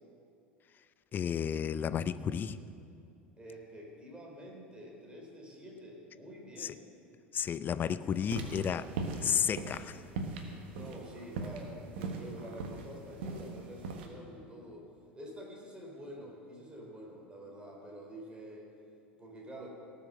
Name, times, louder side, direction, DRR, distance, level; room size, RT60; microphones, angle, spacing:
voice 1, 1.1-2.6 6.6-6.7 7.3-8.9 9.2-10.0, left 8 dB, 30° left, 14 dB, 0.6 m, -32 dB
voice 2, 3.4-6.8 10.7-14.9 15.1-18.7 19.2-19.7, equal, 15° right, -1 dB, 3.7 m, -47 dB
sound 1, 8.2-14.1, right 4 dB, 65° right, 1.5 m, -39 dB
18.0 x 7.0 x 6.6 m, 2.5 s
figure-of-eight pair, 75°, 6 cm